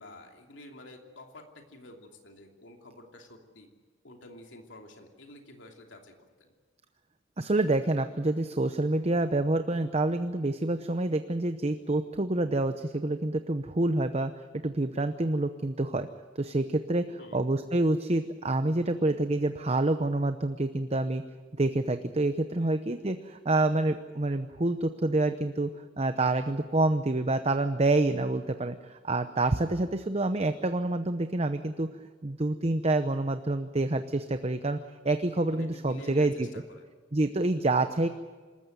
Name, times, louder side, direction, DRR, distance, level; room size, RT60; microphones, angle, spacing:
voice 1, 0.0-3.7 4.0-6.5 17.2-17.4 22.6-22.7 35.5-36.9, left 1 dB, 80° left, 3 dB, 2.9 m, -49 dB
voice 2, 7.4-14.3 14.6-16.1 16.4-21.2 21.6-25.7 26.0-31.9 32.2-34.8 35.0-36.5 37.1-38.1, right 2 dB, 35° right, 9 dB, 0.8 m, -27 dB
26.5 x 14.0 x 9.2 m, 1.4 s
head